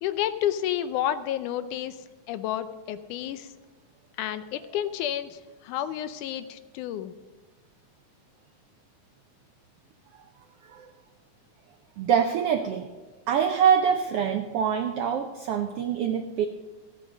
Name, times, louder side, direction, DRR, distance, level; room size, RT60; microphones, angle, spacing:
voice 1, 0.0-2.0 2.3-3.5 4.2-7.1, left 11 dB, 90° left, 11 dB, 2.2 m, -30 dB
voice 2, 12.0-12.9 13.3-16.5, right 8 dB, 85° right, 6 dB, 1.3 m, -25 dB
16.0 x 8.4 x 5.1 m, 1.3 s
omnidirectional pair, 3.5 m